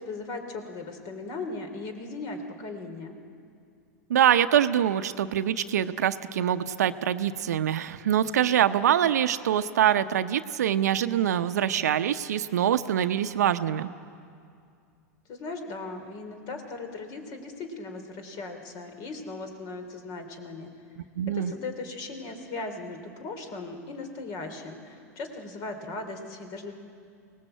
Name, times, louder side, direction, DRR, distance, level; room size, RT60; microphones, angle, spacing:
voice 1, 0.0-3.2 15.3-20.7 21.3-26.7, left 3 dB, 50° left, 6 dB, 3.3 m, -38 dB
voice 2, 4.1-13.9 21.1-21.5, right 10 dB, 80° right, 11 dB, 0.7 m, -24 dB
24.0 x 18.5 x 7.8 m, 2.4 s
hypercardioid pair, 105°, 9 cm